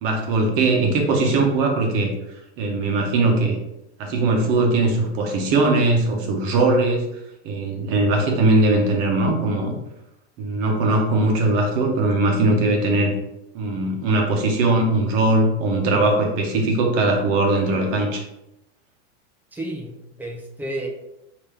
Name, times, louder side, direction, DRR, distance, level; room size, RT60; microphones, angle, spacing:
voice 1, 0.0-2.1 2.6-3.6 4.0-7.1 7.4-9.7 10.4-13.1 13.5-18.2, right 2 dB, 40° right, 1 dB, 1.1 m, -20 dB
voice 2, 19.5-20.9, right 1 dB, 5° right, -1 dB, 0.4 m, -31 dB
5.1 x 2.9 x 3.5 m, 0.88 s
supercardioid pair, 150°, 34 cm